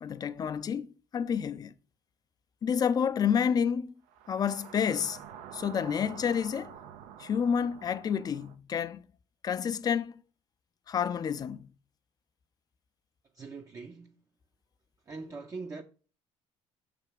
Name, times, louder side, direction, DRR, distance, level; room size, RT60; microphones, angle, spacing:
voice 1, 0.0-1.7 2.6-3.9 4.3-5.2 5.5-6.7 7.2-9.1 9.4-10.2 10.9-11.7, left 7 dB, 35° left, 0.4 m, -29 dB
sound 1, 4.1-8.6, right 9 dB, 90° right, 0.6 m, -48 dB
voice 2, 13.3-14.2 15.1-15.8, right 4 dB, 30° right, 0.6 m, -42 dB
6.0 x 3.3 x 4.9 m
cardioid pair, 100°, 11 cm